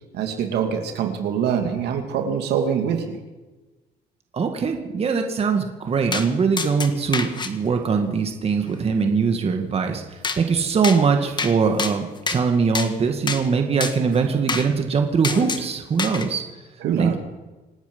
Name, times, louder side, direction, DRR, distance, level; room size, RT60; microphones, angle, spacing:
voice 1, 0.1-3.2 16.8-17.2, right 7 dB, 75° right, 5 dB, 2.6 m, -24 dB
voice 2, 4.3-16.4 17.0-17.2, right 5 dB, 35° right, 5 dB, 2.1 m, -22 dB
sound 1, 6.1-6.3 6.6-7.5 10.2-10.4 10.8-11.0 11.4-11.5 11.8-12.4 12.7-12.9 13.3-13.4 13.8-13.9 14.5-14.7 15.2-15.6 16.0-16.3, left 4 dB, 25° left, 1.6 m, -26 dB
27.0 x 9.6 x 5.5 m, 1.2 s
cardioid pair, 110°, 17 cm